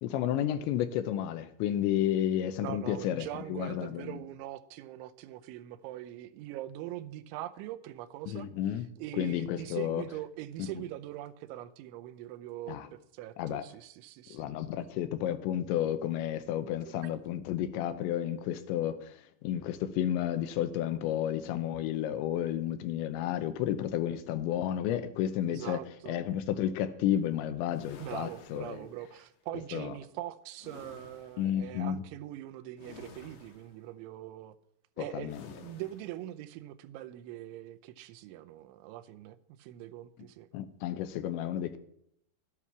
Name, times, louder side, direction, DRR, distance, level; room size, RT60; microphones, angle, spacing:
voice 1, 0.0-4.2 8.3-8.9 9.2-10.0 12.7-12.9 13.4-13.6 14.3-25.8 26.1-28.8 29.7-29.9 31.4-32.0 35.0-35.4 40.5-41.8, left 11 dB, 80° left, 3.0 m, -32 dB
voice 2, 2.6-8.5 9.0-14.5 25.5-26.2 28.0-34.6 35.0-40.5, right 13 dB, 90° right, 3.1 m, -42 dB
sound 1, 27.7-29.3 30.6-31.5 32.8-33.9 35.3-36.2, left 5 dB, 65° left, 2.5 m, -52 dB
12.5 x 10.0 x 6.0 m
omnidirectional pair, 5.3 m